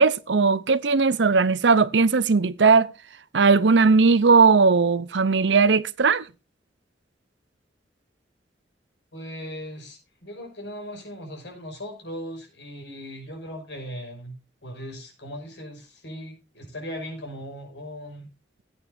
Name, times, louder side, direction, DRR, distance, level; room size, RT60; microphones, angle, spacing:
voice 1, 0.0-2.9 3.3-6.2, right 4 dB, 90° right, 0.7 m, -18 dB
voice 2, 9.1-18.3, equal, 85° left, 6.1 m, -38 dB
18.0 x 9.0 x 2.6 m
head